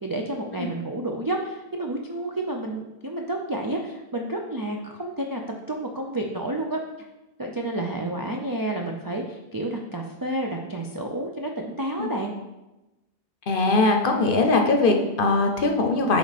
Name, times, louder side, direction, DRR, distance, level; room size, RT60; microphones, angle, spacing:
voice 1, 0.0-5.4 5.7-6.8 7.4-12.3, right 1 dB, 35° right, 0 dB, 0.3 m, -30 dB
voice 2, 13.5-16.2, left 3 dB, 55° left, 4 dB, 0.8 m, -21 dB
8.1 x 3.2 x 4.1 m, 1.0 s
omnidirectional pair, 1.1 m